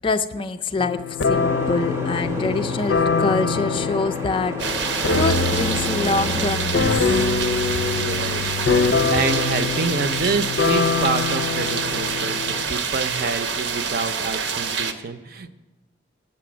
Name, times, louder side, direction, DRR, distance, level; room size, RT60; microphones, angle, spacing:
voice 1, 0.0-6.9, left 3 dB, 30° left, 8 dB, 0.3 m, -25 dB
sound 1, 0.8-12.7, left 4 dB, 80° left, 0.5 m, -24 dB
Boat Water vehicle, 1.3-6.5, left 1 dB, 15° right, 0.6 m, -30 dB
sound 2, 4.6-14.9, right 5 dB, 80° right, 0.8 m, -26 dB
voice 2, 7.8-15.5, right 4 dB, 50° right, 10 dB, 0.6 m, -27 dB
8.4 x 7.6 x 6.0 m, 1.2 s
head